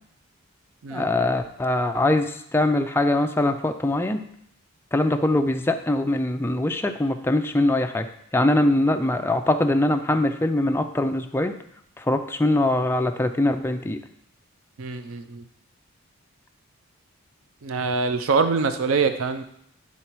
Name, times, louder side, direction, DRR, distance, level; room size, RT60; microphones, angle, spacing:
voice 1, 0.9-4.2 4.9-11.5 12.0-14.0, left 1 dB, 10° left, 6 dB, 0.3 m, -22 dB
voice 2, 14.8-15.4 17.6-19.4, right 4 dB, 65° right, 9 dB, 0.5 m, -24 dB
9.8 x 4.0 x 4.5 m, 0.72 s
head